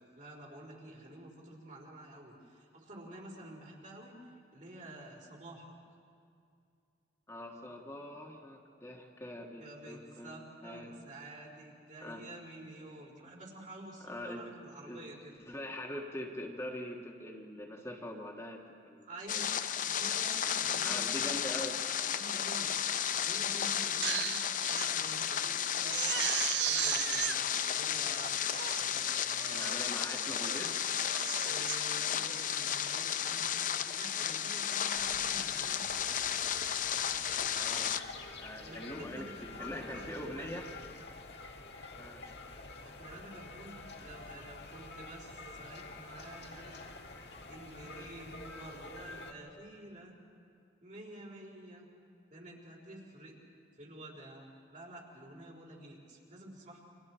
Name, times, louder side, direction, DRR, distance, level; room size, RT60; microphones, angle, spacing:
voice 1, 0.0-4.2 4.5-5.7 9.6-15.4 19.0-19.5 19.8-21.4 22.0-22.8 23.2-26.0 26.7-29.7 31.5-36.0 38.6-40.6 42.8-47.2 47.5-50.2 50.8-51.9 52.3-53.4 53.8-56.8, right 1 dB, 45° right, -2 dB, 4.0 m, -50 dB
voice 2, 7.3-10.3 10.6-11.0 12.0-12.2 14.1-14.4 14.8-15.0 15.5-19.9 20.8-21.8 29.5-30.8 32.1-32.5 37.5-37.9 38.4-40.7 42.0-42.3, left 1 dB, 15° left, -1 dB, 1.6 m, -43 dB
sound 1, 19.3-38.0, left 9 dB, 45° left, 0.6 m, -33 dB
Crying sobbing, 23.8-24.9 25.3-25.4 25.8-27.4 28.0-28.1 28.5-28.9 29.4-29.8 30.2-30.6 31.0-31.8 32.2-32.5, right 13 dB, 70° right, 0.4 m, -35 dB
sound 2, 34.9-49.3, left 3 dB, 65° left, 1.7 m, -47 dB
29.5 x 25.5 x 4.5 m, 2.4 s
head